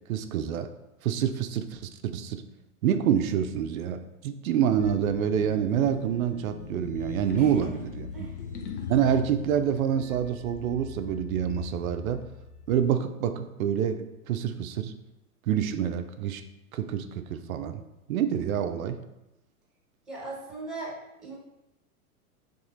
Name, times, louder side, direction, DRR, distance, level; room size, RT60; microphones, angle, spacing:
voice 1, 0.1-0.7 1.0-1.8 2.1-2.4 2.8-7.8 8.9-12.2 12.7-14.9 15.5-16.4 16.7-17.8 18.1-19.0, right 9 dB, 70° right, 9 dB, 0.5 m, -27 dB
sound 1, 4.8-12.9, left 5 dB, 80° left, 0.6 m, -40 dB
voice 2, 7.3-7.7 8.1-8.4 20.1-21.4, right 3 dB, ahead, -5 dB, 1.2 m, -39 dB
4.1 x 2.6 x 2.4 m, 0.95 s
hypercardioid pair, 105°, 44 cm